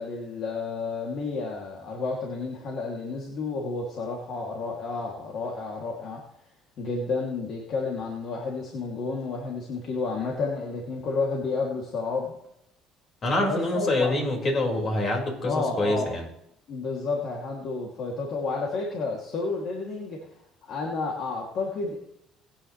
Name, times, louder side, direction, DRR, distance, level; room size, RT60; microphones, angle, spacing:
voice 1, 0.0-6.2 6.8-12.3 13.3-14.1 15.4-16.1 16.7-20.2 20.6-22.0, left 4 dB, 60° left, -1 dB, 2.7 m, -31 dB
voice 2, 13.2-16.2, left 2 dB, 40° left, 1 dB, 5.1 m, -26 dB
20.5 x 10.0 x 3.3 m, 0.77 s
cardioid pair, 100°, 0 cm